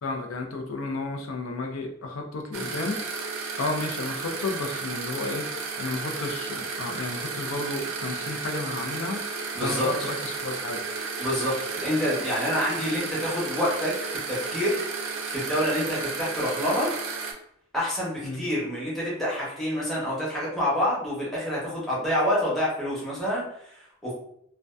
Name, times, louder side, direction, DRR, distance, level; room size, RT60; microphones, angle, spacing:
voice 1, 0.0-3.0 3.6-9.2 9.6-10.8 18.2-18.4, left 3 dB, 75° left, 3 dB, 0.5 m, -32 dB
sound 1, 2.5-17.3, right 4 dB, 75° right, 0.4 m, -33 dB
voice 2, 9.5-9.9 11.2-16.9 17.7-24.1, equal, ahead, -7 dB, 0.8 m, -27 dB
2.6 x 2.1 x 2.2 m, 0.71 s
head